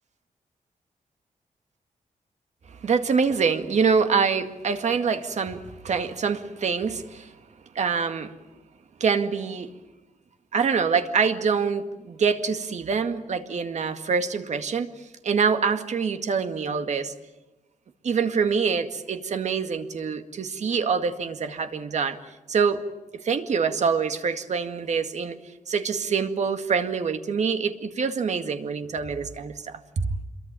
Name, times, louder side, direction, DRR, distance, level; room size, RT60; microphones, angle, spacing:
voice 1, 2.7-7.3 7.8-8.3 9.0-9.7 10.5-17.1 18.0-22.2 22.5-22.8 23.2-25.4 25.7-29.8, right 5 dB, 60° right, 2.1 m, -25 dB
27.0 x 23.0 x 9.1 m
wide cardioid pair, 160°, 13 cm